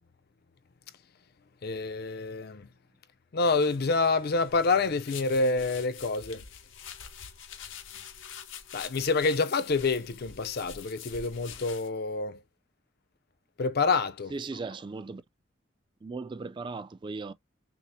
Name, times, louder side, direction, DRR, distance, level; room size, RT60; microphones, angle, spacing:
voice 1, 1.6-2.7 3.3-6.4 8.7-12.4 13.6-14.3, left 3 dB, 55° left, 0.5 m, -27 dB
sound 1, 3.4-11.9, left 8 dB, 85° left, 0.8 m, -46 dB
voice 2, 14.3-15.2 16.0-17.3, right 3 dB, 25° right, 0.3 m, -37 dB
5.9 x 2.0 x 2.6 m
head